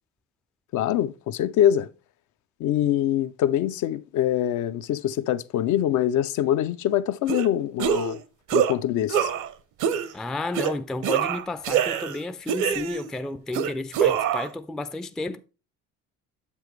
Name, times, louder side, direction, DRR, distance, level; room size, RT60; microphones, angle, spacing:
voice 1, 0.7-1.9 2.6-8.2 8.5-9.3, left 11 dB, 65° left, 0.5 m, -24 dB
sound 1, 7.3-7.5 7.8-8.2 8.5-8.7 9.1-9.5 9.8-10.1 10.5-10.7 11.0-12.2 12.5-13.1 13.5-14.5, right 8 dB, 65° right, 0.7 m, -24 dB
voice 2, 10.1-15.4, left 2 dB, ahead, 0.3 m, -32 dB
7.6 x 6.9 x 3.1 m
supercardioid pair, 90°, 32 cm